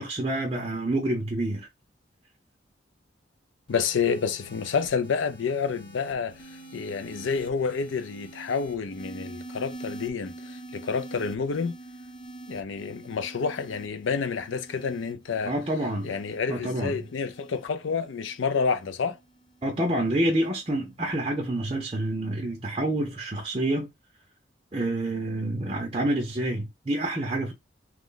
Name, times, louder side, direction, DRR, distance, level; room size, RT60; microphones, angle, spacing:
voice 1, 0.0-1.7 15.4-16.1 16.5-17.0 19.6-23.9 24.7-27.5, right 1 dB, 30° right, 0.6 m, -28 dB
voice 2, 3.7-6.4 6.7-11.8 12.5-15.5 16.0-19.2, left 5 dB, 80° left, 0.5 m, -29 dB
sound 1, 3.7-20.2 21.1-21.4, right 2 dB, 25° left, 0.8 m, -46 dB
3.1 x 2.2 x 3.8 m
head